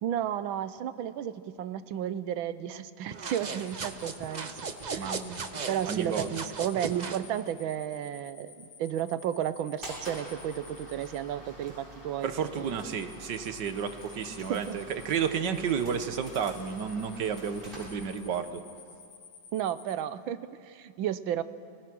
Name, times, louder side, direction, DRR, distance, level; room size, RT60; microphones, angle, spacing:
voice 1, 0.0-4.5 4.9-5.1 5.7-12.3 14.5-14.8 19.5-21.4, right 10 dB, 85° right, 13 dB, 1.6 m, -33 dB
sound 1, 3.1-7.3, right 4 dB, 45° right, 0.5 m, -37 dB
sound 2, 3.6-11.2 12.2-20.0, left 6 dB, 55° left, 2.3 m, -52 dB
voice 2, 5.0-5.4 5.8-6.3 12.2-18.6, right 7 dB, 65° right, 9 dB, 1.7 m, -32 dB
sound 3, 9.8-18.5, equal, 25° right, 7.8 m, -47 dB
30.0 x 19.5 x 6.2 m, 2.3 s
omnidirectional pair, 2.1 m